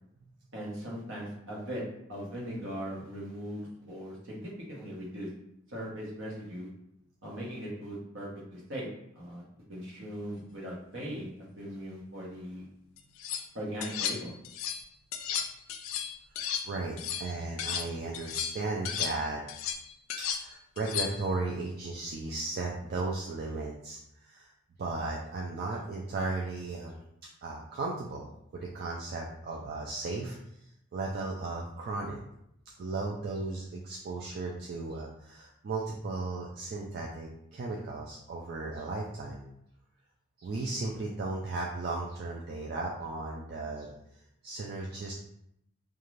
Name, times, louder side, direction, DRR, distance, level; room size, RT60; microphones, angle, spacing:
voice 1, 0.5-1.8 2.1-5.3 5.7-6.7 7.2-8.9 9.1-9.4 9.7-12.7 13.5-14.3, equal, 70° right, -4 dB, 0.9 m, -39 dB
sound 1, 13.0-13.4 13.8-14.8 15.1-17.9 18.1-21.3, left 8 dB, 85° left, 0.3 m, -35 dB
voice 2, 16.6-19.4 20.4-24.5 24.8-26.9 27.4-30.4 30.9-32.2 32.8-39.5 40.4-43.9 44.4-45.1, right 3 dB, 50° right, -2 dB, 0.3 m, -35 dB
2.5 x 2.3 x 3.0 m, 0.77 s
head